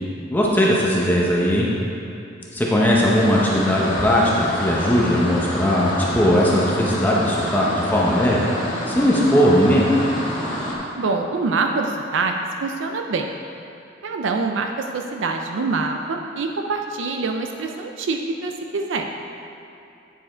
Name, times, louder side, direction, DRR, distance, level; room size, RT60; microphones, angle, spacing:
voice 1, 0.3-1.7 2.5-8.5 8.9-9.8, equal, 10° left, -5 dB, 0.7 m, -18 dB
sound 1, 3.1-10.8, left 1 dB, 45° left, 1.5 m, -28 dB
voice 2, 11.0-12.3 12.6-13.3 14.0-19.0, right 3 dB, 80° right, 4 dB, 0.4 m, -25 dB
9.6 x 4.9 x 4.3 m, 2.7 s
head